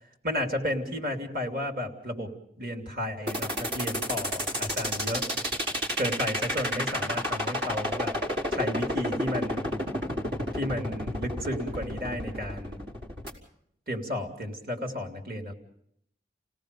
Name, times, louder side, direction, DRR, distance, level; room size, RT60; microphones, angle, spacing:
voice 1, 0.2-2.3 2.6-5.2 6.0-8.1 8.5-9.8 10.5-12.8 13.9-15.5, left 1 dB, 55° right, 2 dB, 3.0 m, -33 dB
sound 1, 3.3-13.3, equal, 85° right, 4.7 m, -30 dB
30.0 x 18.0 x 5.2 m, 0.72 s
head